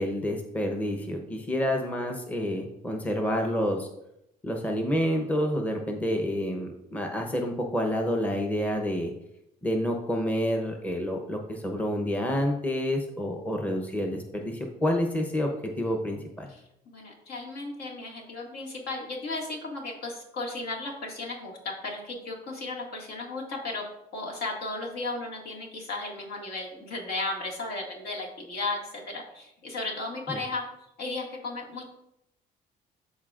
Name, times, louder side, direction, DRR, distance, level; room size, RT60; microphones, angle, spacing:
voice 1, 0.0-3.9 4.4-9.1 9.6-16.5 30.3-30.4, equal, 10° left, 3 dB, 0.8 m, -28 dB
voice 2, 16.5-23.9 24.1-30.6 31.0-31.8, left 2 dB, 70° left, -1 dB, 2.0 m, -35 dB
13.0 x 4.3 x 2.4 m, 0.82 s
cardioid pair, 110°, 17 cm